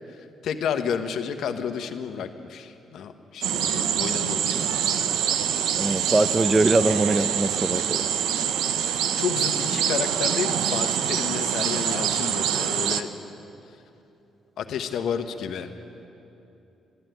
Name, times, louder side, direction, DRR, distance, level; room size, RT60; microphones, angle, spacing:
voice 1, 0.4-5.1 5.4-5.5 9.2-13.1 14.6-15.7, left 7 dB, 75° left, 8 dB, 1.0 m, -31 dB
sound 1, 3.4-13.0, right 9 dB, 85° right, 0.6 m, -25 dB
voice 2, 5.7-8.1, right 2 dB, 25° right, 14 dB, 0.6 m, -22 dB
14.0 x 11.0 x 9.2 m, 2.8 s
cardioid pair, 90°, 0 cm